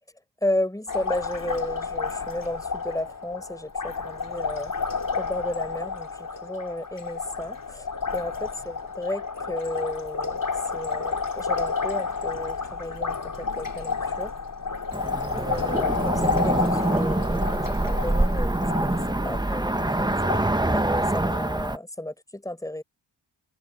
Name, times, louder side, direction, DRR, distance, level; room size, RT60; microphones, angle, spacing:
voice 1, 0.4-4.7 5.2-6.1 6.4-7.9 8.1-14.3 15.4-20.1 20.7-22.8, left 1 dB, 5° left, 5.0 m, -33 dB
Liquid, 0.9-20.4, left 5 dB, 45° left, 5.1 m, -31 dB
Cricket / Motor vehicle (road), 14.9-21.8, right 1 dB, 10° right, 1.1 m, -25 dB
cardioid pair, 55°, 45 cm